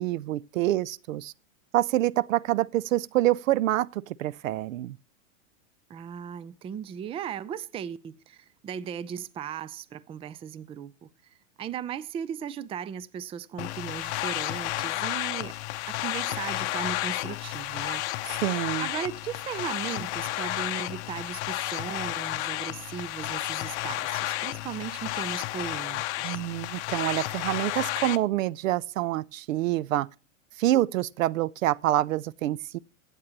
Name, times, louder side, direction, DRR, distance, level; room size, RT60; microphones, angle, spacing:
voice 1, 0.0-1.3 1.7-5.0 18.4-18.9 26.2-30.1 30.6-32.8, right 15 dB, 75° right, 0.6 m, -26 dB
voice 2, 5.9-11.1 11.6-15.5 15.9-18.0 18.5-26.4, right 8 dB, 15° right, 0.4 m, -37 dB
sound 1, 13.6-28.2, left 17 dB, 55° left, 0.8 m, -32 dB
16.0 x 8.2 x 2.9 m
hypercardioid pair, 120°, 39 cm